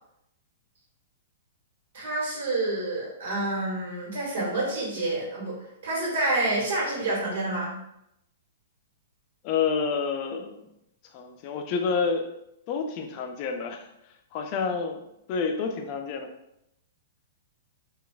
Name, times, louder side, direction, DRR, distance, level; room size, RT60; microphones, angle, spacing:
voice 1, 1.9-5.6 5.8-7.7, right 2 dB, 70° right, -5 dB, 1.5 m, -28 dB
voice 2, 9.4-10.6 11.1-12.3 12.7-13.9 14.3-15.0 15.3-16.3, left 5 dB, 40° left, 4 dB, 0.4 m, -28 dB
3.9 x 2.4 x 2.3 m, 0.80 s
hypercardioid pair, 140°, 0 cm